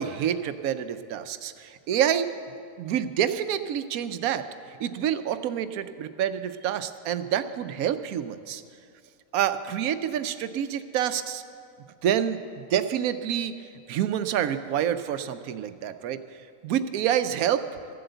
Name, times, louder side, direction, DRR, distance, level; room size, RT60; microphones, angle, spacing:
voice 1, 0.0-2.3 2.8-4.4 4.8-8.6 9.3-11.4 12.0-13.5 13.9-16.2 16.6-17.6, right 10 dB, 85° right, 11 dB, 1.1 m, -27 dB
15.0 x 7.8 x 7.9 m, 2.3 s
omnidirectional pair, 1.5 m